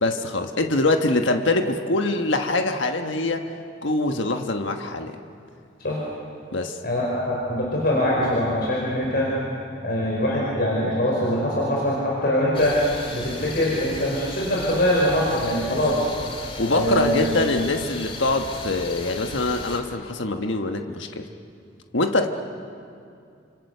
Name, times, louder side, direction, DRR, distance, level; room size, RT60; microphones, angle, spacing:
voice 1, 0.0-3.4 3.8-5.2 6.5-6.8 16.6-21.3 21.9-22.3, left 2 dB, 75° left, 4 dB, 1.4 m, -24 dB
voice 2, 6.8-9.3 9.8-12.8 13.1-16.0 16.7-17.2, left 1 dB, 50° left, -4 dB, 5.0 m, -23 dB
sound 1, 12.5-19.8, left 2 dB, 30° left, 2.3 m, -36 dB
29.0 x 26.5 x 6.8 m, 2.4 s
head